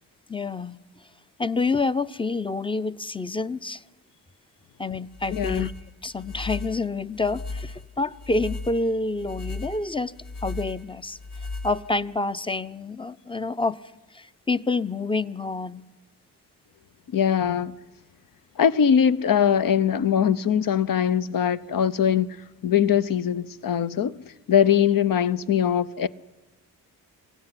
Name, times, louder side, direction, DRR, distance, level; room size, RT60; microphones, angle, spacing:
voice 1, 0.3-0.8 1.4-3.8 4.8-5.7 6.0-10.1 10.4-11.2 11.6-13.8 14.1-15.9, left 3 dB, 10° left, 0.8 m, -28 dB
sound 1, 5.1-12.2, left 3 dB, 70° left, 3.1 m, -36 dB
voice 2, 5.3-5.7 17.1-17.8 18.6-22.3 22.6-24.2 24.5-26.1, left 8 dB, 50° left, 0.9 m, -21 dB
23.5 x 16.5 x 9.9 m
supercardioid pair, 55°, 43 cm